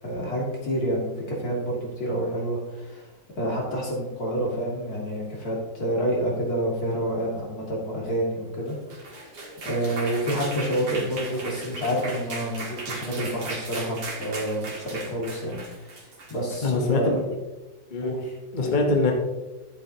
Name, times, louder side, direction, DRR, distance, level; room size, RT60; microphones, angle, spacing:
voice 1, 0.0-3.1 3.4-9.3 9.6-17.2 18.0-18.8, right 1 dB, 50° left, -3 dB, 2.8 m, -28 dB
sound 1, 8.7-17.0, right 2 dB, 60° right, 2.4 m, -37 dB
voice 2, 16.6-17.3 17.9-18.1 18.5-19.1, left 3 dB, 35° left, 1 dB, 0.9 m, -23 dB
11.5 x 8.2 x 2.8 m, 1.1 s
omnidirectional pair, 2.0 m